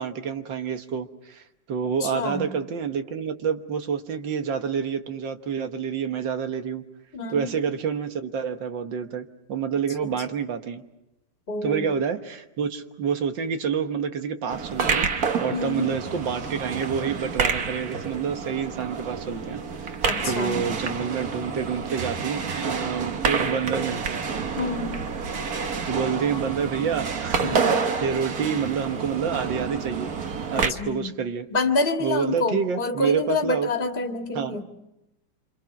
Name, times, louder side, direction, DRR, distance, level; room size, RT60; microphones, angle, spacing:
voice 1, 0.0-1.4 1.7-6.8 7.3-10.8 11.6-15.1 15.4-20.0 20.2-24.3 25.9-30.1 30.5-31.5 32.0-33.7 34.4-34.6, right 6 dB, 80° right, 7 dB, 2.0 m, -28 dB
voice 2, 2.0-2.5 7.1-7.5 10.0-10.1 11.5-11.9 15.5-15.9 20.1-20.7 24.6-25.0 27.4-27.8 30.5-31.1 31.5-34.6, left 3 dB, 30° left, 4 dB, 2.0 m, -27 dB
sound 1, 14.5-30.7, right 5 dB, 55° right, 1.8 m, -28 dB
27.5 x 27.0 x 5.9 m, 0.91 s
omnidirectional pair, 2.0 m